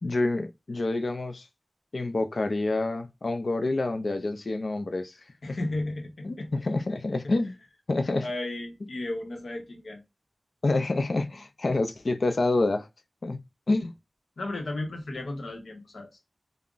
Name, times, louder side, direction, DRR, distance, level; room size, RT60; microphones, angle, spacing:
voice 1, 0.0-1.5 1.9-5.1 5.5-5.6 6.2-7.5 7.9-8.3 10.6-12.9 13.2-13.4 13.7-13.9, left 2 dB, 65° left, 0.3 m, -27 dB
voice 2, 5.4-6.5 8.2-10.0 14.4-16.1, left 2 dB, 90° left, 0.7 m, -34 dB
2.4 x 2.0 x 3.6 m
wide cardioid pair, 60°, 0 cm